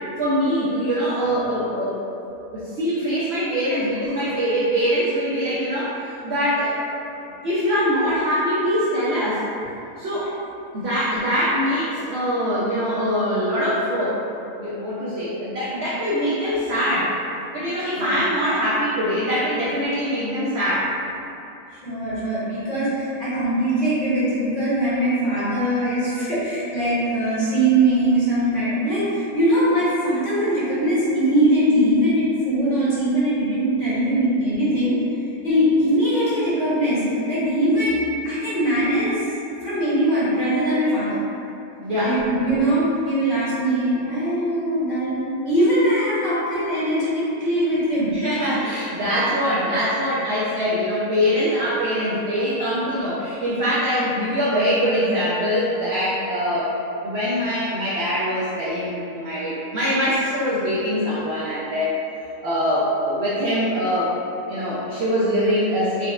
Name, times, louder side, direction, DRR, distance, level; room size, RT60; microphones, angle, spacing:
voice 1, 0.2-7.1 7.4-9.4 10.0-10.3 10.7-14.2 14.6-17.1 17.5-20.9 22.2-22.3 25.8-25.9 41.8-42.2 48.1-56.7 57.0-61.9 62.4-64.1 64.5-66.1, equal, 70° right, -8 dB, 0.6 m, -23 dB
voice 2, 21.8-34.9 35.4-39.3 39.6-41.2 42.0-48.1, right 1 dB, 35° left, -13 dB, 1.0 m, -21 dB
4.1 x 2.1 x 2.3 m, 2.8 s
omnidirectional pair, 1.6 m